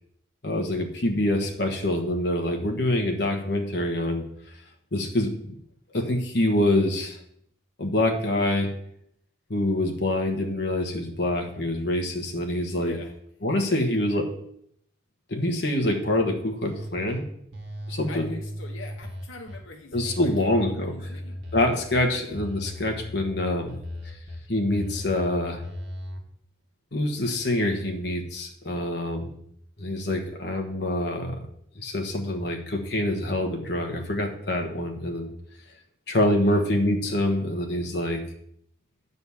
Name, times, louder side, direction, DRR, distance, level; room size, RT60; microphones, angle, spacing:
voice 1, 0.4-4.2 4.9-5.6 5.9-7.2 7.8-8.7 9.5-13.0 13.4-14.3 15.3-17.2 17.9-18.3 19.9-21.0 21.5-23.8 24.5-25.6 26.9-29.3 29.8-31.4 31.7-35.3 36.1-38.2, left 1 dB, 55° left, 3 dB, 1.3 m, -25 dB
voice 2, 12.8-13.1 13.5-13.8 14.1-14.2 18.1-20.3 20.7-21.4 21.9-22.2 36.4-36.6, left 3 dB, 85° left, 2 dB, 0.8 m, -43 dB
sound 1, 16.6-17.2 17.5-19.6 19.9-22.0 22.3-24.4 24.7-26.2, left 1 dB, 75° right, 1.6 m, -37 dB
9.5 x 4.1 x 7.0 m, 0.70 s
head